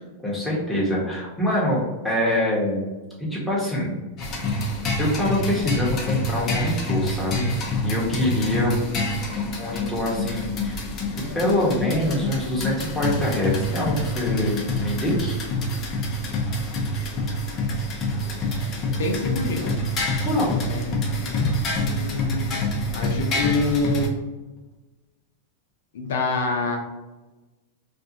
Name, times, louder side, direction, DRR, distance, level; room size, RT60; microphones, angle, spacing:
voice 1, 0.2-2.9 3.2-3.9 4.5-4.6 5.0-7.5 7.8-9.2 9.6-10.8 11.1-15.4 20.2-20.6 21.4-21.5, left 1 dB, 5° left, -6 dB, 1.1 m, -25 dB
sound 1, 4.2-24.1, left 1 dB, 35° left, 0.6 m, -27 dB
voice 2, 19.0-19.7 20.7-22.6 22.9-24.1 25.9-26.8, left 3 dB, 75° left, 2 dB, 0.6 m, -27 dB
2.5 x 2.4 x 2.7 m, 1.2 s
hypercardioid pair, 125°, 0 cm